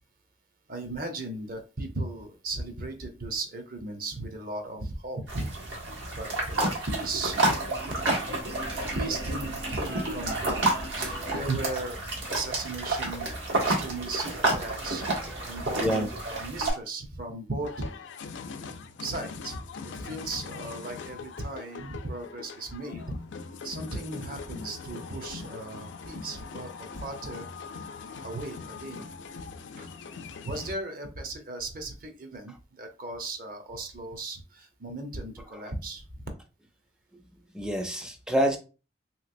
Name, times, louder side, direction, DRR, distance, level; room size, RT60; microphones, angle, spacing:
voice 1, 0.7-5.5 6.2-7.5 7.9-8.3 8.7-10.6 11.0-12.0 12.3-15.1 15.4-17.9 19.0-19.6 19.9-23.2 23.6-27.5 28.2-29.1 29.8-29.9 30.4-36.3, right 2 dB, 45° right, 0.7 m, -36 dB
sound 1, 5.3-16.7, right 2 dB, 80° right, 1.4 m, -30 dB
sound 2, 7.6-11.9, equal, 60° right, 1.3 m, -41 dB
voice 2, 15.2-15.5 15.8-16.1 35.5-35.7 37.5-38.6, equal, 5° right, 0.4 m, -28 dB
sound 3, 17.6-30.7, left 5 dB, 70° left, 0.4 m, -42 dB
3.3 x 3.0 x 2.5 m
head